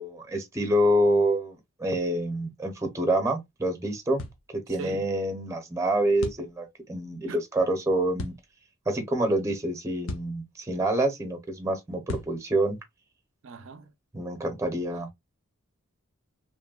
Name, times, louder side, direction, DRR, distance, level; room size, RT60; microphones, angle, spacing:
voice 1, 0.0-4.2 4.7-8.3 8.9-12.8 14.1-15.1, right 1 dB, 15° right, 0.6 m, -27 dB
sound 1, 4.2-4.4 6.2-6.5 8.2-8.4 10.1-10.4 12.1-12.4, left 2 dB, 65° left, 0.5 m, -35 dB
voice 2, 4.7-5.1 7.3-7.4 13.4-13.9, right 5 dB, 60° right, 0.4 m, -40 dB
3.0 x 2.2 x 2.2 m
head